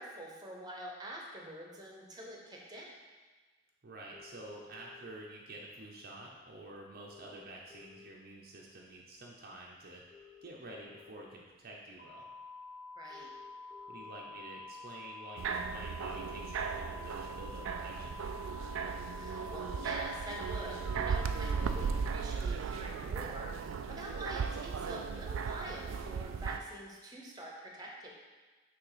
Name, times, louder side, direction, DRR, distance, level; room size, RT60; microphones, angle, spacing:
voice 1, 0.0-3.0 13.0-13.3 19.2-28.1, right 1 dB, 20° right, -1 dB, 0.9 m, -46 dB
voice 2, 3.8-10.0 10.4-12.3 13.9-18.2, right 1 dB, 50° right, -2 dB, 0.7 m, -49 dB
sound 1, 4.1-5.1 6.3-6.4 6.7-6.8 6.9-8.4 8.9-9.1 9.9-11.1 11.8-12.0 13.0-14.1 15.3-15.4 15.9-17.1 17.8-17.9 18.2-18.3 18.5-18.6 18.8-20.1 20.4-22.6, left 6 dB, 10° left, 0.6 m, -58 dB
sound 2, 12.0-22.0, left 3 dB, 45° left, 1.1 m, -48 dB
sound 3, 15.4-26.6, right 6 dB, 85° right, 0.3 m, -36 dB
6.1 x 3.5 x 4.9 m, 1.3 s
head